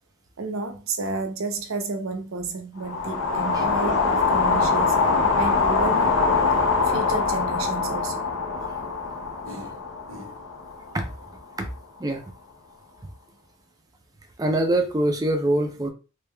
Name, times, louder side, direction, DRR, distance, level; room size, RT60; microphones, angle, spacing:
voice 1, 0.4-5.0 5.4-6.2 6.9-8.2 9.4-9.8 10.1-10.4, right 3 dB, 85° right, 0.7 m, -31 dB
sound 1, 2.8-11.0, left 4 dB, 70° left, 0.9 m, -23 dB
voice 2, 14.4-15.9, right 1 dB, 20° right, 0.6 m, -23 dB
3.5 x 3.4 x 2.2 m
head